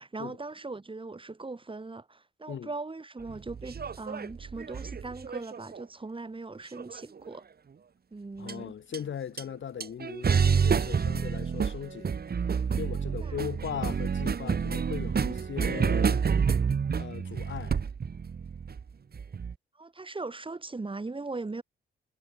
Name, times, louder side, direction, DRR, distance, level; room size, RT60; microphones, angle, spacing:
voice 1, 0.0-7.4 8.1-8.7 13.2-13.4 19.8-21.6, right 3 dB, 25° right, 7.5 m, -39 dB
sound 1, 3.3-5.8 6.8-7.3 8.5-8.6 8.9-9.0 9.4-9.5 9.8-19.5, right 6 dB, 45° right, 5.8 m, -29 dB
voice 2, 8.4-12.2 12.8-16.3 17.0-17.8, left 8 dB, 65° left, 6.0 m, -38 dB
cardioid pair, 90°, 21 cm